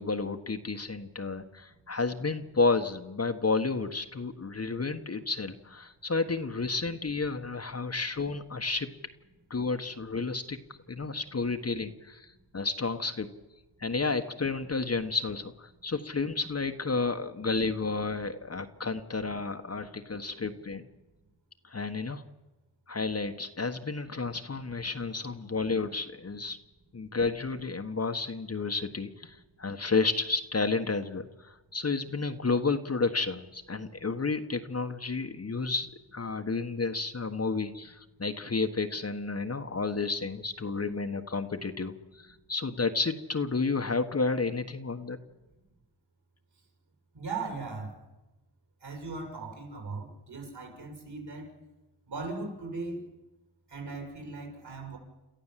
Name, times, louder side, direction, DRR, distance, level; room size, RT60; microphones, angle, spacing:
voice 1, 0.0-8.9 9.5-10.6 10.9-13.3 13.8-20.8 21.6-22.2 22.9-26.6 26.9-45.2, left 4 dB, 30° left, 6 dB, 1.4 m, -31 dB
voice 2, 47.1-48.0 48.8-51.5 52.1-53.0 53.7-55.0, right 3 dB, 55° right, 2 dB, 7.0 m, -38 dB
28.0 x 14.0 x 7.6 m, 1.0 s
supercardioid pair, 50°, 46 cm